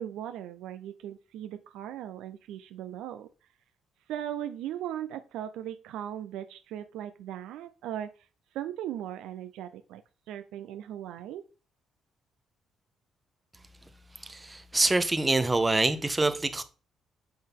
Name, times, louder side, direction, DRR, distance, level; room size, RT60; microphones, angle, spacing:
voice 1, 0.0-3.3 4.1-8.3 8.5-10.0 10.3-11.5, right 11 dB, 90° right, 0.4 m, -38 dB
voice 2, 14.2-16.6, right 2 dB, 20° right, 0.9 m, -25 dB
7.7 x 5.4 x 3.6 m
cardioid pair, 90°, 0 cm